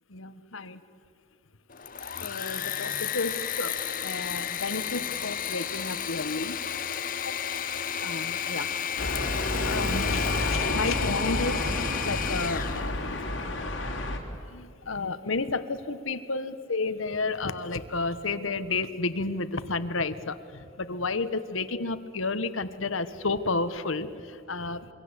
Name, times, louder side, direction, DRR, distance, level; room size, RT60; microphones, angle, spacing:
voice 1, 0.1-0.8 2.2-6.6 7.2-7.3 8.0-11.8 12.0-13.5 14.5-24.9, left 3 dB, 80° left, 12 dB, 1.4 m, -32 dB
Engine / Mechanisms, 1.7-12.9, left 9 dB, 40° left, 1.0 m, -32 dB
sound 1, 9.0-14.2, left 2 dB, 60° left, 3.8 m, -30 dB
27.5 x 23.5 x 8.2 m, 2.7 s
head